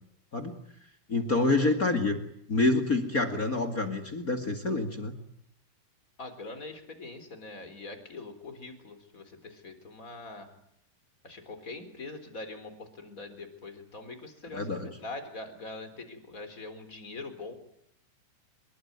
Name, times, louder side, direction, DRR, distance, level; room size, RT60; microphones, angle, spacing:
voice 1, 1.1-2.2 2.5-5.1 14.5-15.0, left 3 dB, 35° left, 8 dB, 1.4 m, -27 dB
voice 2, 6.2-10.5 11.2-17.5, left 3 dB, 20° left, 8 dB, 3.8 m, -43 dB
26.5 x 22.5 x 9.5 m, 0.73 s
omnidirectional pair, 5.0 m